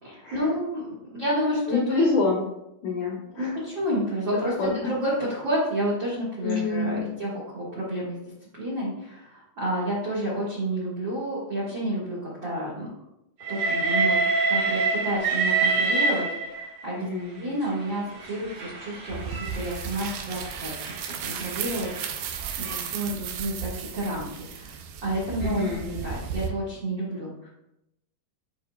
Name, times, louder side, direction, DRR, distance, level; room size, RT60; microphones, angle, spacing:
voice 1, 0.0-0.9 1.1-1.8 3.3-8.3 8.6-12.9 13.5-14.2 14.5-17.1 17.4-20.8 21.2-21.9 22.2-27.5, right 1 dB, 70° right, -6 dB, 1.0 m, -30 dB
voice 2, 1.7-2.4 2.8-3.5 4.6-4.7 6.4-7.0 17.0-17.4 25.4-25.9, left 3 dB, 75° left, -2 dB, 1.8 m, -26 dB
Train, 13.4-16.8 17.7-22.9, right 3 dB, 55° right, 2.2 m, -27 dB
sound 1, 19.1-26.5, right 7 dB, 85° right, 2.0 m, -35 dB
11.0 x 4.6 x 2.2 m, 0.85 s
omnidirectional pair, 4.8 m